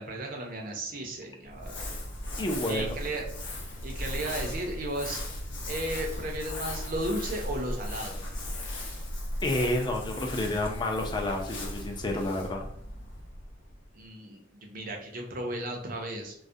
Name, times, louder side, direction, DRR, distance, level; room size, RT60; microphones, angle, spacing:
voice 1, 0.0-1.9 2.7-3.2 3.8-5.2 5.7-8.2 13.9-16.3, right 1 dB, 50° right, 2 dB, 0.5 m, -35 dB
Crumpling crinkling, 1.5-13.9, left 1 dB, 90° left, 0.7 m, -37 dB
voice 2, 2.4-2.9 9.4-12.7, left 1 dB, 25° left, 3 dB, 0.3 m, -30 dB
2.3 x 2.0 x 2.6 m, 0.67 s
head